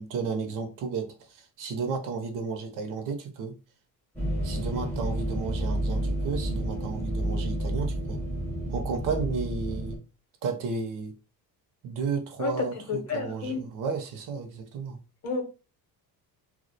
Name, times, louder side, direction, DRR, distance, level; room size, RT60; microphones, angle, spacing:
voice 1, 0.0-3.5 4.4-8.2 8.7-10.0 10.4-11.1 11.8-15.0, right 5 dB, 55° right, 0.5 m, -33 dB
sound 1, 4.1-10.0, right 1 dB, 5° left, 0.4 m, -30 dB
voice 2, 12.4-13.6 15.2-15.4, left 4 dB, 40° left, 0.7 m, -31 dB
2.3 x 2.0 x 2.6 m
cardioid pair, 175°, 39 cm